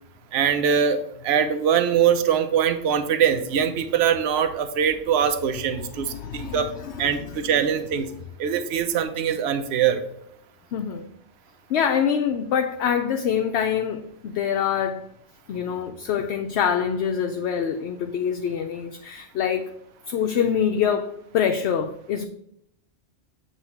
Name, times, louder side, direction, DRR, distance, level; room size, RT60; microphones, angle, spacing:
voice 1, 0.3-6.7 7.0-8.1 8.4-10.0, right 8 dB, 65° right, 8 dB, 0.9 m, -22 dB
voice 2, 5.9-7.5 10.7-11.0 11.7-15.0 15.5-19.7 20.1-22.3, left 8 dB, 70° left, 5 dB, 0.8 m, -25 dB
8.1 x 2.8 x 5.7 m, 0.75 s
omnidirectional pair, 1.3 m